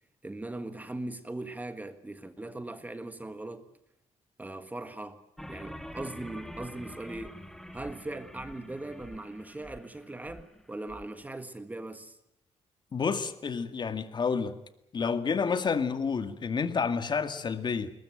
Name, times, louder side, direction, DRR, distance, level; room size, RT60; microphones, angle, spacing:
voice 1, 0.2-3.7 4.4-5.2 5.5-7.4 7.7-12.2, right 2 dB, 15° right, 1.6 m, -39 dB
sound 1, 5.4-11.1, equal, 5° left, 1.6 m, -46 dB
voice 2, 12.9-14.6 14.9-17.9, left 5 dB, 40° left, 2.0 m, -29 dB
21.5 x 20.5 x 9.1 m
cardioid pair, 115°, 11 cm